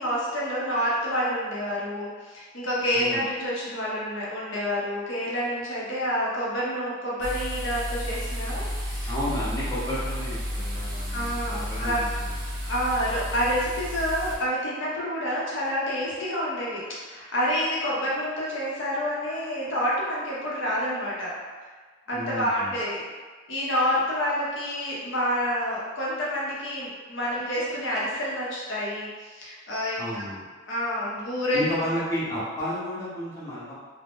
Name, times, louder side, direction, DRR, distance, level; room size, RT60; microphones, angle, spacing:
voice 1, 0.0-9.1 11.1-12.0 12.6-21.3 22.1-23.0 23.5-30.2 30.7-31.7, equal, 65° left, -6 dB, 0.7 m, -28 dB
voice 2, 2.9-3.3 9.1-12.3 22.1-22.8 30.0-30.4 31.5-33.7, equal, 15° left, -9 dB, 0.7 m, -32 dB
sound 1, 7.2-14.4, equal, 20° right, 0.4 m, -32 dB
2.5 x 2.1 x 3.4 m, 1.5 s
head